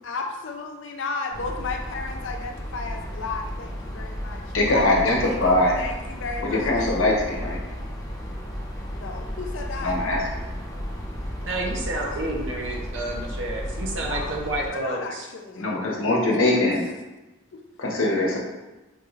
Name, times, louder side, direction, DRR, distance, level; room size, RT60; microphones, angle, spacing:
voice 1, 0.0-6.9 8.9-10.0 11.9-12.3 14.0-15.7 17.5-17.6, left 3 dB, 70° left, 3 dB, 0.5 m, -34 dB
sound 1, 1.3-14.7, equal, 20° left, 0.7 m, -33 dB
voice 2, 4.5-5.8 6.4-7.6 9.8-10.2 15.6-16.8 17.8-18.4, left 2 dB, 85° left, -2 dB, 0.8 m, -22 dB
voice 3, 11.4-15.2, right 2 dB, 70° right, -1 dB, 0.7 m, -30 dB
4.5 x 3.0 x 2.5 m, 1.1 s
head